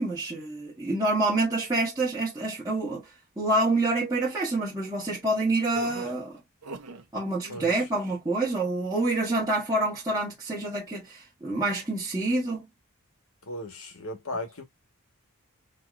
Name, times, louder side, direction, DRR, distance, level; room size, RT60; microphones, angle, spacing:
voice 1, 0.0-3.1 3.4-6.4 7.1-12.7, right 2 dB, 15° right, 1.2 m, -27 dB
sound 1, 5.7-7.1 7.4-7.9, right 2 dB, 85° right, 0.8 m, -41 dB
voice 2, 13.5-14.6, left 1 dB, 65° left, 1.4 m, -36 dB
4.4 x 2.8 x 2.4 m
head